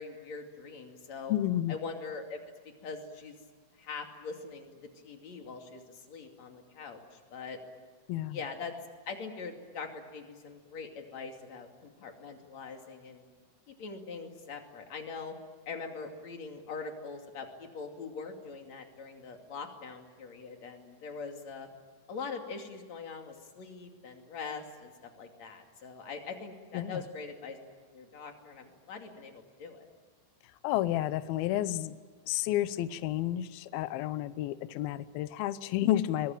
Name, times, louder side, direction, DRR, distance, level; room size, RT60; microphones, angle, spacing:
voice 1, 0.0-1.3 1.7-2.4 2.8-3.4 3.8-4.7 5.0-7.6 8.3-8.7 9.1-13.2 13.7-15.3 15.7-21.7 22.1-24.9 25.2-27.6 27.9-29.9, left 4 dB, 40° left, 3 dB, 3.2 m, -42 dB
voice 2, 1.3-1.7 8.1-8.4 26.7-27.0 30.6-32.0 32.3-36.3, left 13 dB, 85° left, 14 dB, 2.1 m, -31 dB
23.0 x 22.0 x 9.0 m, 1.5 s
omnidirectional pair, 5.5 m